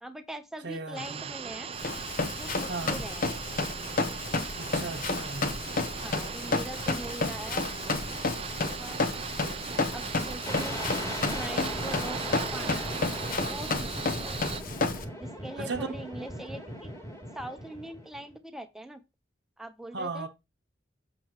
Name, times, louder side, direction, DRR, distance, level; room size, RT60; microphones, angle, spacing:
voice 1, 0.0-1.7 2.3-3.3 5.9-7.6 8.7-9.0 9.9-12.9 13.4-14.4 15.2-16.9 17.3-19.0 19.6-20.3, right 1 dB, ahead, 0.8 m, -42 dB
voice 2, 0.6-1.0 2.7-3.0 4.5-5.5 15.6-16.0 19.9-20.3, right 3 dB, 65° right, 0.9 m, -36 dB
sound 1, 0.9-14.6, right 6 dB, 30° right, 0.4 m, -38 dB
Run, 1.8-15.0, left 3 dB, 50° left, 0.8 m, -31 dB
sound 2, 10.5-18.3, equal, 15° left, 1.9 m, -38 dB
7.7 x 6.0 x 3.0 m
head